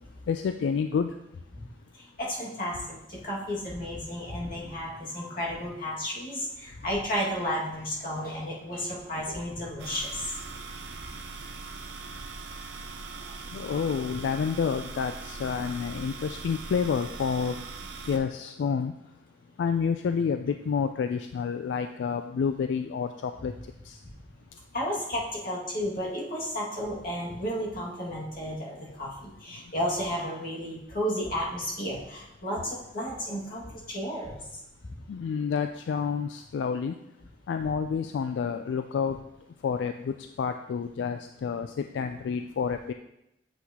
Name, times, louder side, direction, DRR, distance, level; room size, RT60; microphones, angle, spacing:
voice 1, 0.3-1.1 13.5-17.6 18.1-18.9 19.6-23.5 23.9-24.0 35.1-36.9 37.5-39.2 39.6-42.9, left 6 dB, 85° left, 8 dB, 0.3 m, -29 dB
voice 2, 1.9-10.3 13.2-13.3 24.7-34.6, equal, 55° left, -5 dB, 2.1 m, -33 dB
sound 1, 9.8-18.2, right 4 dB, 70° right, 0.7 m, -41 dB
7.9 x 5.8 x 2.9 m, 0.84 s
head